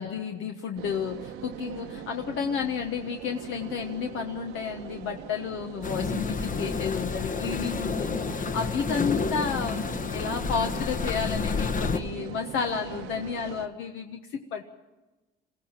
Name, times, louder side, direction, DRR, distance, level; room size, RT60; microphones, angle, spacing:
voice 1, 0.0-9.8 10.1-14.6, left 6 dB, 75° left, 3 dB, 1.4 m, -32 dB
sound 1, 0.8-13.7, right 10 dB, 80° right, 1.2 m, -41 dB
sound 2, 5.8-12.0, left 5 dB, 40° left, 1.2 m, -30 dB
22.0 x 16.0 x 9.0 m, 1.1 s
supercardioid pair, 85°, 21 cm